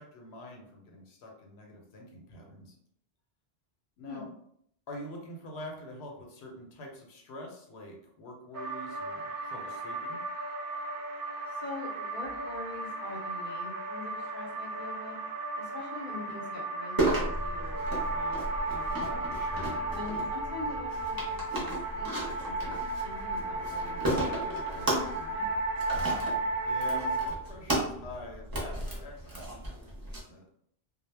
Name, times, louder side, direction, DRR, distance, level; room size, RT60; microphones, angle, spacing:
voice 1, 0.0-2.8 4.0-4.3 4.9-10.2 19.3-19.8 26.1-30.5, left 1 dB, 80° left, 0 dB, 0.9 m, -45 dB
sound 1, 8.5-27.3, right 2 dB, 65° right, 0.7 m, -35 dB
voice 2, 11.5-15.2 15.6-19.2 19.9-25.6, left 3 dB, 50° left, -4 dB, 0.6 m, -44 dB
sound 2, 17.0-30.2, right 1 dB, 25° right, 0.5 m, -34 dB
2.1 x 2.0 x 3.2 m, 0.70 s
omnidirectional pair, 1.1 m